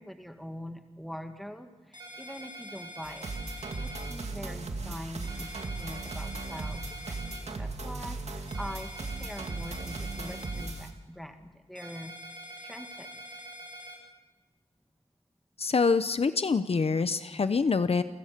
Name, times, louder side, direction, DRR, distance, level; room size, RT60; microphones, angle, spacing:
voice 1, 0.0-3.4 3.7-12.2 12.5-13.4, equal, ahead, 6 dB, 1.9 m, -43 dB
sound 1, 1.9-4.1 5.2-7.4 8.5-10.7 11.7-14.0, equal, 40° right, 6.3 m, -45 dB
sound 2, 3.0-10.9, right 3 dB, 70° right, 2.4 m, -37 dB
voice 2, 15.6-18.0, left 4 dB, 60° left, 11 dB, 0.8 m, -25 dB
28.5 x 16.0 x 6.8 m, 1.2 s
wide cardioid pair, 100°, 12 cm